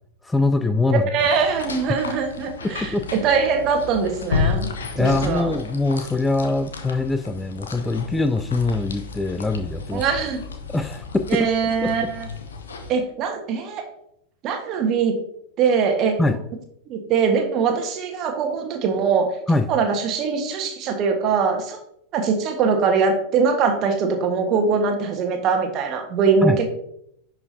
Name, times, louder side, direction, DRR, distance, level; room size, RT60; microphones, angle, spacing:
voice 1, 0.2-1.0 1.9-2.0 2.9-3.0 5.0-10.1 10.7-12.1 16.2-16.4 19.5-19.7 26.4-26.6, left 2 dB, 10° left, 8 dB, 0.4 m, -23 dB
voice 2, 1.1-2.9 3.2-4.7 5.0-5.5 9.9-10.4 11.3-12.3 12.9-13.8 14.4-15.1 15.6-16.2 16.9-19.3 19.7-21.8 22.1-26.7, right 5 dB, 35° right, 4 dB, 1.5 m, -22 dB
sound 1, 1.2-12.9, left 4 dB, 70° left, 1.1 m, -32 dB
11.0 x 4.9 x 2.8 m, 0.74 s
figure-of-eight pair, 90°, 0 cm